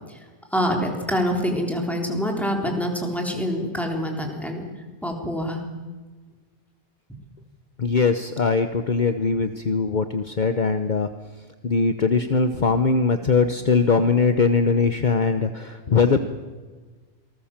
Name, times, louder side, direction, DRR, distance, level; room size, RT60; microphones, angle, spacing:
voice 1, 0.5-4.7 5.0-5.6, equal, ahead, 2 dB, 3.7 m, -25 dB
voice 2, 7.8-11.1 11.6-16.2, left 4 dB, 50° left, 9 dB, 1.1 m, -21 dB
27.5 x 19.5 x 7.4 m, 1.4 s
omnidirectional pair, 1.0 m